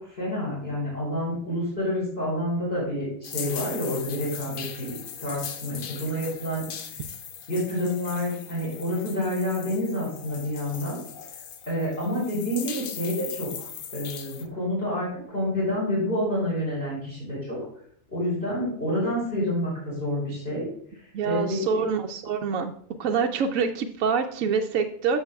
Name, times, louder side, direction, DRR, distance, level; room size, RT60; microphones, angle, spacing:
voice 1, 0.0-4.9 5.2-7.0 7.5-11.0 11.7-13.5 13.9-17.6 18.1-20.7 21.2-21.8, left 1 dB, 40° left, -8 dB, 4.3 m, -28 dB
sound 1, 3.2-14.5, left 8 dB, 65° left, 0.5 m, -39 dB
voice 2, 21.1-22.7 23.0-25.2, right 6 dB, 70° right, 4 dB, 0.9 m, -26 dB
13.5 x 6.0 x 2.3 m, 0.64 s
omnidirectional pair, 1.6 m